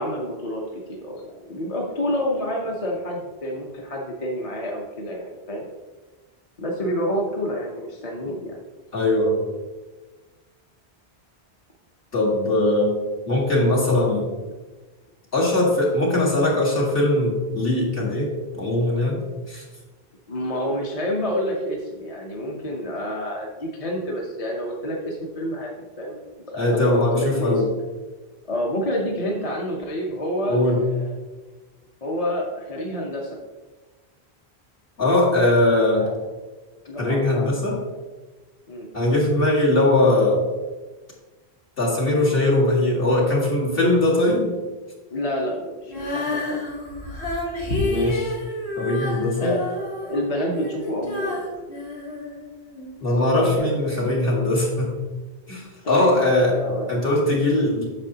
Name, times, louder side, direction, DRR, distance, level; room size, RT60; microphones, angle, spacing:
voice 1, 0.0-5.6 6.6-8.6 20.3-27.5 28.5-31.1 32.0-33.4 36.0-36.1 36.8-37.7 38.7-38.9 45.1-46.6 49.4-49.7 50.0-51.7 53.1-53.7 55.8-57.1 57.5-57.7, equal, 35° left, -1 dB, 0.9 m, -28 dB
voice 2, 8.9-9.4 12.1-13.0 13.3-14.3 15.3-19.6 26.6-27.7 30.5-30.8 35.0-36.1 37.0-37.8 38.9-40.4 41.8-44.5 47.8-48.3 48.8-49.6 53.0-55.0 55.5-56.6 56.9-57.8, left 1 dB, 60° left, -4 dB, 2.1 m, -20 dB
Female singing, 45.9-52.9 53.5-53.6, left 2 dB, 90° left, 1.6 m, -29 dB
8.7 x 6.6 x 2.8 m, 1.3 s
omnidirectional pair, 1.1 m